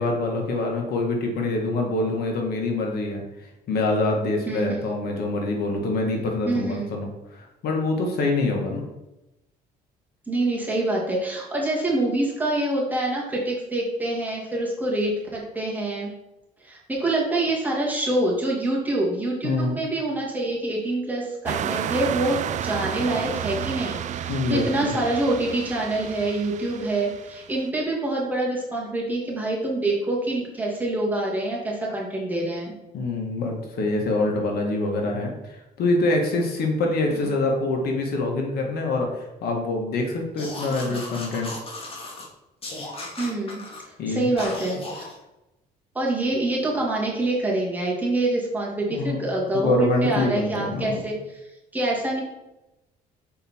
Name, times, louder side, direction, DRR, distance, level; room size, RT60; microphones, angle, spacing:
voice 1, 0.0-3.2 3.7-8.8 19.4-19.8 24.3-24.9 32.9-41.5 44.0-44.3 48.9-49.2 49.5-51.0, left 2 dB, 65° left, 1 dB, 1.7 m, -25 dB
voice 2, 4.5-4.8 6.5-6.9 10.3-16.1 16.6-32.7 37.1-37.3 40.8-41.0 43.2-43.6 44.1-44.8 45.9-51.4 51.7-52.2, right 2 dB, 10° right, -4 dB, 2.3 m, -26 dB
sound 1, 21.5-27.6, right 10 dB, 45° right, 0.4 m, -31 dB
sound 2, 40.4-42.3 42.6-43.8 44.4-45.2, left 2 dB, 35° left, 2.0 m, -36 dB
6.4 x 4.9 x 4.5 m, 0.95 s
cardioid pair, 110°, 17 cm